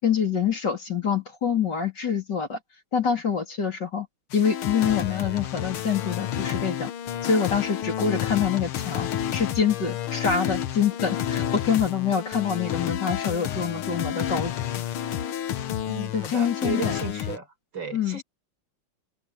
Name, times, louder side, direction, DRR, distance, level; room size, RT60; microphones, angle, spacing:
voice 1, 0.0-2.6 2.9-4.1 4.3-6.9 7.2-14.5 16.1-17.0 17.9-18.2, left 7 dB, 55° left, 4.2 m, -26 dB
sound 1, 4.3-17.4, left 10 dB, 85° left, 2.0 m, -30 dB
voice 2, 15.9-17.5 17.7-18.2, right 4 dB, 60° right, 5.6 m, -34 dB
omnidirectional pair, 2.3 m